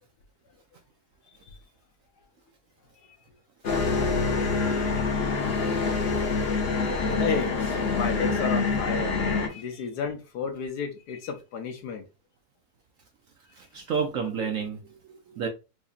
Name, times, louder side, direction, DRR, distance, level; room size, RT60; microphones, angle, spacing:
sound 1, 3.6-9.5, left 4 dB, 50° left, 0.9 m, -26 dB
voice 1, 7.1-12.0 13.8-13.9, left 5 dB, 75° left, 1.3 m, -32 dB
voice 2, 13.5-15.5, right 6 dB, 65° right, 0.9 m, -31 dB
4.8 x 2.7 x 2.4 m
omnidirectional pair, 1.7 m